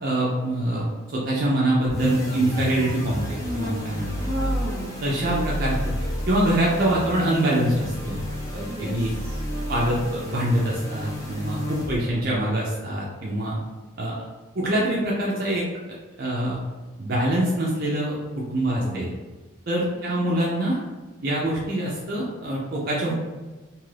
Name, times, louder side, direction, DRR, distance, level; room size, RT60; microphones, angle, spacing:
voice 1, 0.0-4.1 5.0-5.9 6.3-8.2 8.5-9.1 9.7-13.6 14.0-14.2 14.5-15.6 16.2-16.6 17.0-18.1 18.5-19.1 19.7-20.8 21.2-23.1, right 1 dB, 50° right, -4 dB, 0.5 m, -24 dB
sound 1, 1.8-12.2, equal, 15° left, 0.6 m, -31 dB
voice 2, 4.2-5.0 8.7-9.4 12.1-12.2 18.7-19.1 19.9-20.2 23.1-23.2, right 1 dB, 10° right, -6 dB, 1.0 m, -34 dB
2.6 x 2.4 x 3.2 m, 1.3 s
head